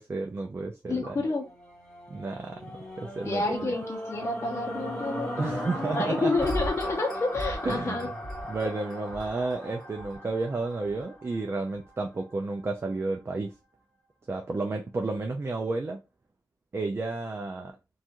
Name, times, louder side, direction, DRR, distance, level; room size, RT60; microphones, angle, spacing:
voice 1, 0.0-1.2 2.1-3.7 5.4-6.3 7.6-8.1 8.5-13.5 14.3-16.0 16.7-17.7, right 3 dB, 35° right, 0.4 m, -32 dB
voice 2, 0.9-1.4 3.3-5.7 5.9-8.1, left 3 dB, 40° left, 0.6 m, -29 dB
sound 1, 1.3-11.6 12.2-12.3, equal, 10° left, 1.4 m, -36 dB
2.5 x 2.3 x 2.8 m
wide cardioid pair, 120°, 7 cm